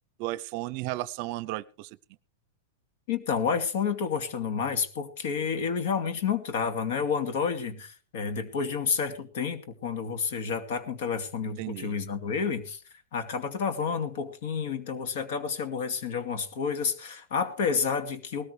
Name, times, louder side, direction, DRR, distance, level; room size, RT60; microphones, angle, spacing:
voice 1, 0.2-2.0 11.6-12.0, right 18 dB, 45° right, 19 dB, 0.6 m, -34 dB
voice 2, 3.1-12.8 13.1-18.5, left 6 dB, 65° left, 8 dB, 2.3 m, -30 dB
19.0 x 14.0 x 3.3 m, 0.38 s
supercardioid pair, 145°, 0 cm